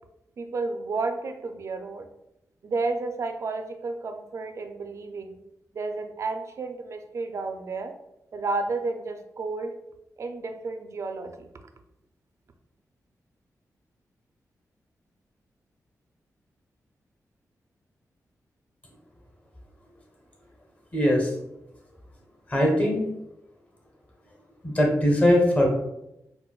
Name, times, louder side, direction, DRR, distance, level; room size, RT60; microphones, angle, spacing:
voice 1, 0.4-2.1 2.6-5.4 5.7-7.9 8.3-9.8 10.2-11.5, right 3 dB, 50° right, 6 dB, 0.4 m, -31 dB
voice 2, 20.9-21.3 22.5-23.0 24.6-25.7, left 1 dB, 25° left, -1 dB, 0.9 m, -20 dB
4.5 x 2.1 x 2.3 m, 0.85 s
wide cardioid pair, 105°, 6 cm